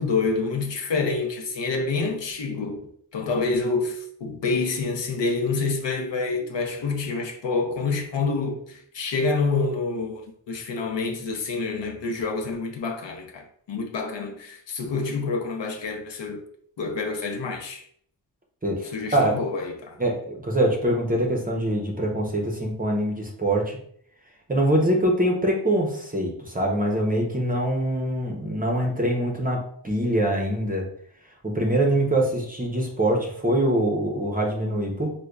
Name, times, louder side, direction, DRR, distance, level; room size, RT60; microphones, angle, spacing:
voice 1, 0.0-2.8 3.1-16.4 16.8-17.8 18.9-20.0, left 4 dB, 75° left, 0.7 m, -27 dB
voice 2, 18.6-19.3 20.0-23.8 24.5-30.9 31.4-35.1, right 1 dB, 20° right, 0.6 m, -24 dB
4.9 x 2.2 x 2.2 m
wide cardioid pair, 140°, 44 cm